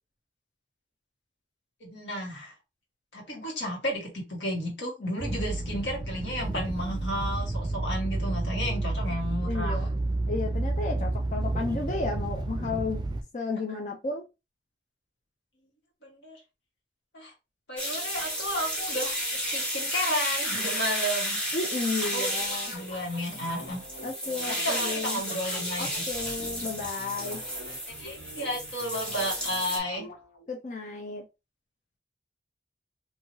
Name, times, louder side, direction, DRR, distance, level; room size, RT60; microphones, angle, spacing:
voice 1, 1.8-2.5 3.1-9.9 16.0-16.4 17.1-17.3 17.7-21.4 22.1-22.3 22.7-23.8 24.5-26.0 28.0-30.1, equal, 90° left, -2 dB, 1.5 m, -33 dB
sound 1, 5.2-13.2, right 2 dB, 25° right, 0.3 m, -30 dB
voice 2, 9.5-9.9 10.3-13.0 13.3-14.2 21.5-22.7 24.0-25.2 25.8-27.4 30.5-31.2, left 3 dB, 45° left, 1 dB, 0.5 m, -33 dB
sound 2, 17.8-29.8, equal, 5° left, 0.8 m, -32 dB
sound 3, 22.4-30.5, equal, 60° left, 1.6 m, -45 dB
2.7 x 2.7 x 2.9 m, 0.26 s
head